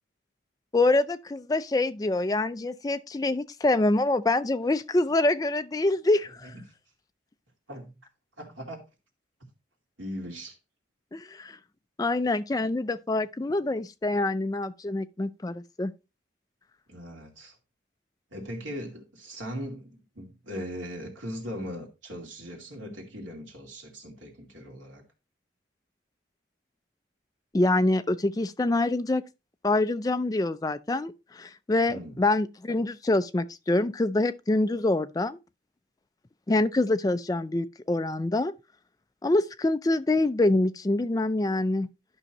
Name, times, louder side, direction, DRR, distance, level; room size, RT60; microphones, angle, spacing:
voice 1, 0.7-6.5 11.1-11.6 12.0-15.9 27.5-29.2 29.6-35.4 36.5-38.5 39.2-41.9, left 2 dB, 20° left, 0.3 m, -25 dB
voice 2, 8.4-8.8 10.0-10.6 16.9-17.5 18.3-25.0 31.9-32.2, equal, 90° right, 2.4 m, -39 dB
12.0 x 5.4 x 2.9 m
head